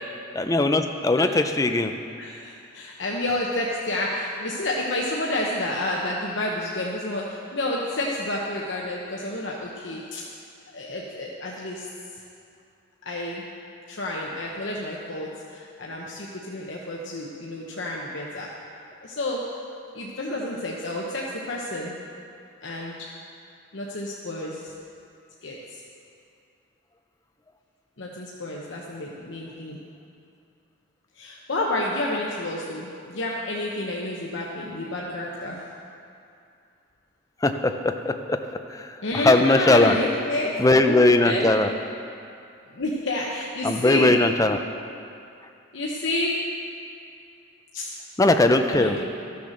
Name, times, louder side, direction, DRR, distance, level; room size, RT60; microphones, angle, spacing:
voice 1, 0.3-1.9 37.4-38.4 38.7-38.9 39.2-40.0 40.6-41.7 43.6-44.6 48.2-49.0, left 2 dB, 15° left, 6 dB, 0.5 m, -19 dB
voice 2, 2.2-10.2 10.7-11.9 13.0-13.5 13.9-18.5 19.0-19.4 19.9-21.9 22.6-23.1 23.7-24.7 25.4-25.8 28.0-29.8 31.2-35.6 39.0-40.5 41.2-41.5 42.7-44.1 45.7-46.3 47.7-47.9 48.7-49.1, left 1 dB, 65° left, -3 dB, 1.0 m, -29 dB
13.5 x 7.0 x 6.4 m, 2.5 s
head